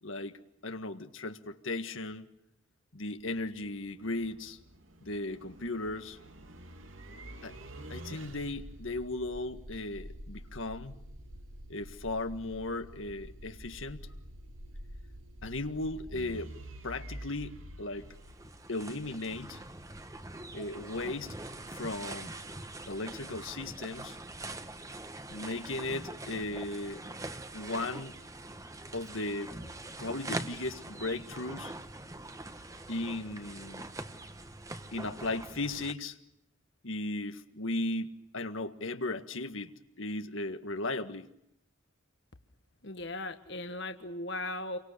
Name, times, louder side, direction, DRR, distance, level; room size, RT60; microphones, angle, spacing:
voice 1, 0.0-2.3 2.9-4.6 5.0-6.2 7.4-7.6 7.9-11.0 11.7-14.1 15.4-16.5 16.8-18.1 18.7-19.6 20.5-21.4 21.7-22.3 22.9-24.2 25.3-27.0 27.5-28.2 28.9-29.6 30.0-31.7 32.9-33.8 34.9-36.2 36.8-41.3, left 2 dB, 80° left, 8 dB, 1.7 m, -36 dB
sound 1, 3.1-19.1, equal, 75° right, 2.7 m, -48 dB
sound 2, 18.0-35.9, right 2 dB, 15° right, 1.4 m, -43 dB
voice 2, 42.8-44.8, left 2 dB, 60° left, 7 dB, 1.6 m, -37 dB
29.5 x 24.5 x 6.8 m, 0.78 s
head